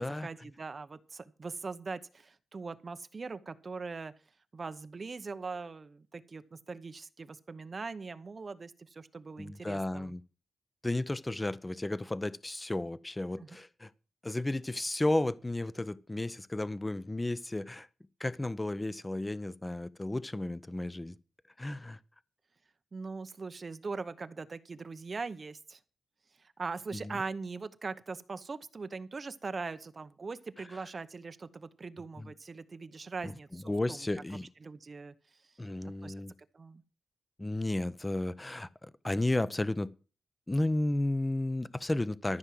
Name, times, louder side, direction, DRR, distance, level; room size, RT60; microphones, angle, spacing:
voice 1, 0.0-4.1 4.5-10.1 13.4-13.6 22.9-25.8 26.4-34.1 34.6-35.1 35.8-36.1 36.5-36.8, right 4 dB, 30° right, 0.8 m, -41 dB
voice 2, 9.4-10.2 10.8-13.9 14.2-17.9 18.2-21.1 21.6-22.0 26.9-27.2 32.2-32.3 33.2-34.5 35.6-36.3 37.4-39.9 40.5-42.4, left 1 dB, 15° left, 0.5 m, -33 dB
13.5 x 6.2 x 7.7 m
wide cardioid pair, 175°, 0 cm